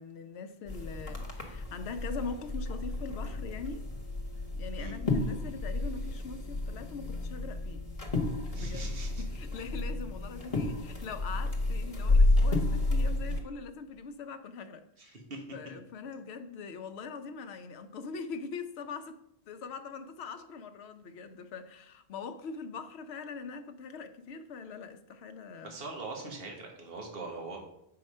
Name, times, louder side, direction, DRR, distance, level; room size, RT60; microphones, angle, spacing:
voice 1, 0.0-3.9 4.6-7.8 8.5-15.2 15.5-19.2 19.5-25.7, left 4 dB, 75° left, 0.9 m, -42 dB
sound 1, 0.7-13.4, left 2 dB, 35° left, 1.2 m, -31 dB
voice 2, 8.5-9.2 15.0-15.4 25.6-27.6, right 3 dB, 60° right, 1.5 m, -41 dB
7.6 x 4.8 x 5.4 m
omnidirectional pair, 1.1 m